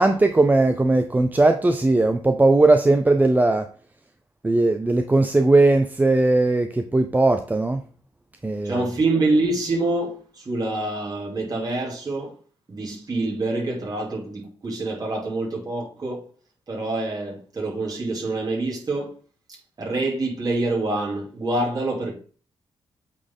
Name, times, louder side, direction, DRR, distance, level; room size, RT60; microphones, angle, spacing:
voice 1, 0.0-3.7 4.4-7.8 8.4-8.9, right 2 dB, 15° right, 0.5 m, -18 dB
voice 2, 8.6-12.3 12.7-16.2 16.7-19.2 19.8-22.1, right 2 dB, 40° right, 2.6 m, -26 dB
8.3 x 4.1 x 3.7 m
cardioid pair, 90°, 10 cm